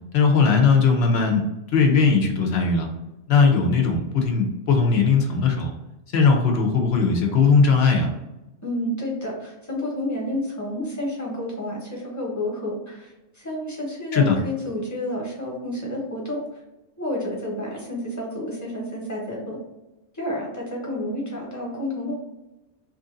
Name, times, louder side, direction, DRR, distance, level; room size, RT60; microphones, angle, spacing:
voice 1, 0.1-1.5 1.7-2.9 3.3-5.7 6.1-8.1 14.1-14.4, left 5 dB, 65° left, 3 dB, 0.9 m, -19 dB
voice 2, 8.6-16.4 17.0-19.6 20.1-22.2, left 1 dB, 15° left, -3 dB, 1.1 m, -30 dB
3.1 x 2.6 x 3.7 m, 0.97 s
omnidirectional pair, 1.2 m